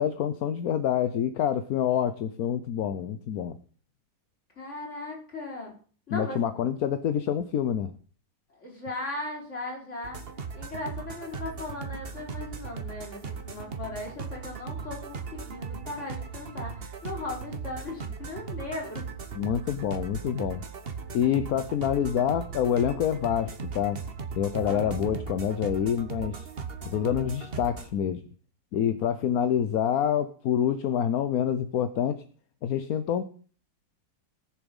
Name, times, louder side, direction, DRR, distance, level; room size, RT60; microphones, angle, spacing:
voice 1, 0.0-3.6 6.1-7.9 19.3-20.6 21.1-24.0 24.3-26.5 26.8-28.2 28.7-32.2 32.6-33.3, left 9 dB, 65° left, 10 dB, 1.2 m, -27 dB
voice 2, 4.6-5.8 6.1-6.4 8.6-10.2 10.5-19.0 24.6-25.1, left 2 dB, 40° left, -1 dB, 4.8 m, -38 dB
sound 1, 10.0-27.9, right 5 dB, 40° right, 1.3 m, -38 dB
19.0 x 7.1 x 5.4 m, 0.42 s
omnidirectional pair, 1.8 m